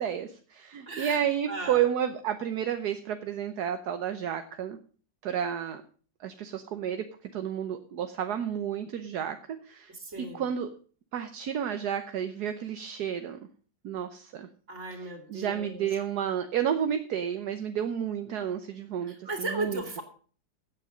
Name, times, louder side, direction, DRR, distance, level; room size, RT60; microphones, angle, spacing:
voice 1, 0.0-4.8 5.2-5.8 6.2-9.4 9.6-9.9 10.3-10.7 11.1-13.4 13.8-14.5 15.0-20.0, right 9 dB, 70° right, 8 dB, 1.4 m, -31 dB
voice 2, 0.9-1.9 9.9-10.5 14.7-15.9 19.0-20.0, right 2 dB, 45° right, 5 dB, 3.0 m, -36 dB
15.5 x 8.5 x 5.1 m, 0.41 s
omnidirectional pair, 1.8 m